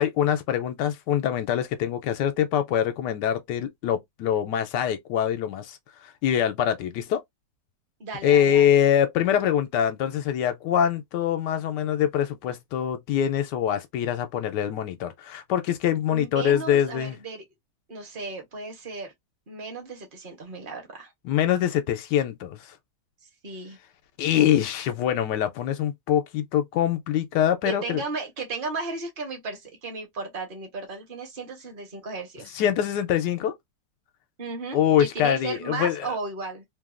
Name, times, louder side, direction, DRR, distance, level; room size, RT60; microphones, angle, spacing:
voice 1, 0.0-5.8 6.0-7.2 8.2-17.1 21.2-22.7 24.2-28.0 32.5-33.5 34.7-36.1, left 10 dB, 85° left, 1.2 m, -24 dB
voice 2, 8.0-8.8 16.1-17.4 17.9-19.1 19.5-21.1 23.4-23.8 27.6-32.6 34.4-36.6, right 4 dB, 40° right, 1.0 m, -35 dB
3.1 x 2.3 x 2.4 m
omnidirectional pair, 1.8 m